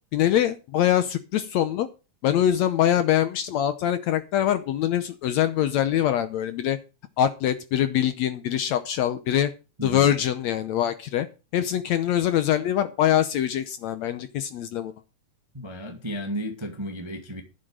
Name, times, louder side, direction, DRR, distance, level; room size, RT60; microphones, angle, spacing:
voice 1, 0.1-1.9 2.2-6.8 7.2-9.5 9.8-11.3 11.5-14.9, left 11 dB, 70° left, 1.8 m, -23 dB
voice 2, 15.5-17.4, equal, 15° right, 0.9 m, -33 dB
11.5 x 7.8 x 6.3 m
omnidirectional pair, 3.8 m